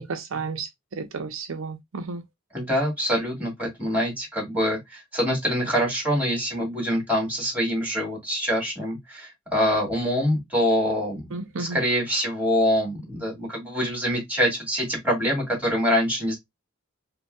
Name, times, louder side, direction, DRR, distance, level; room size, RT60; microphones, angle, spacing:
voice 1, 0.0-2.2 11.3-11.8, right 4 dB, 75° right, 0.6 m, -32 dB
voice 2, 2.5-11.3 11.6-16.4, equal, 10° right, 2.2 m, -25 dB
5.2 x 2.2 x 2.2 m
head